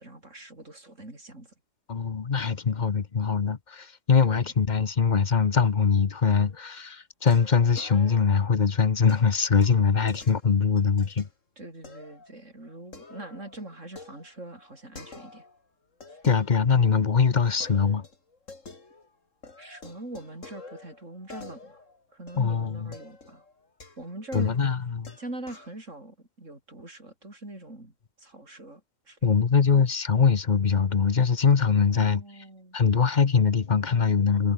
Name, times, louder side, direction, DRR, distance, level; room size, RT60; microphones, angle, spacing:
voice 1, 0.0-1.5 4.2-4.4 11.6-15.4 19.6-21.8 22.1-23.4 24.0-24.5 25.2-28.8 29.1-29.2 31.9-32.8, right 2 dB, 80° right, 6.8 m, -43 dB
voice 2, 1.9-11.3 16.2-18.1 22.4-22.9 24.3-25.1 29.2-32.2 32.7-34.5, left 5 dB, 40° left, 1.0 m, -22 dB
sound 1, 6.3-6.7 7.3-8.5 9.1-11.3 11.8-12.3 12.6-15.6 16.0-17.1 17.6-19.2 19.4-25.8, left 3 dB, 90° left, 3.6 m, -48 dB
omnidirectional pair, 1.3 m